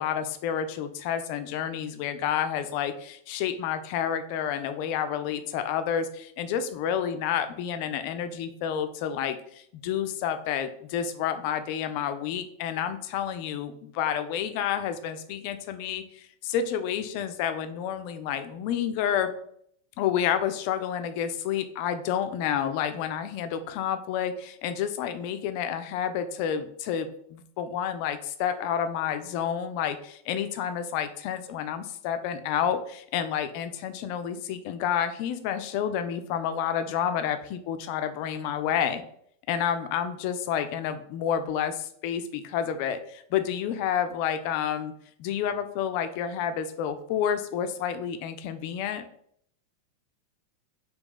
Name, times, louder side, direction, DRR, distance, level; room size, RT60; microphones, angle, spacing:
voice 1, 0.0-19.3 20.0-39.0 39.5-44.9 45.2-49.0, left 9 dB, 45° left, 9 dB, 0.4 m, -29 dB
3.4 x 2.3 x 3.5 m, 0.66 s
figure-of-eight pair, 90°, 0 cm